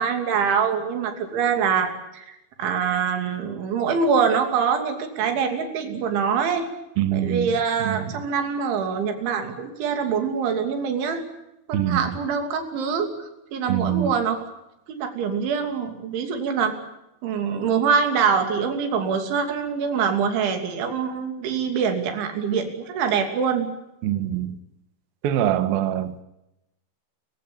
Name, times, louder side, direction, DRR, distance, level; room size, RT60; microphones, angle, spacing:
voice 1, 0.0-6.7 7.1-11.2 11.7-14.4 14.9-16.8 17.2-23.7, right 6 dB, 85° right, 6 dB, 5.3 m, -24 dB
voice 2, 7.0-8.1 11.7-12.1 13.7-14.1 24.0-24.6 25.2-26.2, right 11 dB, 65° right, 11 dB, 2.8 m, -24 dB
29.0 x 16.0 x 8.7 m, 0.89 s
omnidirectional pair, 5.2 m